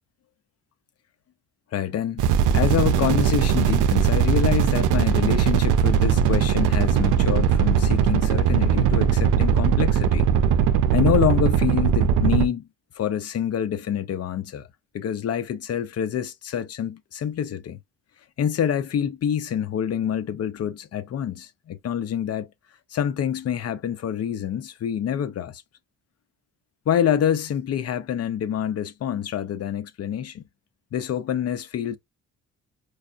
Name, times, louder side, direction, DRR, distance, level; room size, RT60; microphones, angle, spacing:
voice 1, 1.7-2.3 2.5-10.3 10.9-12.7 13.0-14.7 14.9-17.8 18.4-22.5 22.9-25.6 26.9-30.4 30.9-32.0, left 9 dB, 55° left, 0.7 m, -26 dB
sound 1, 2.2-12.5, right 8 dB, 90° right, 0.5 m, -20 dB
4.8 x 2.4 x 2.3 m
cardioid pair, 90°, 30 cm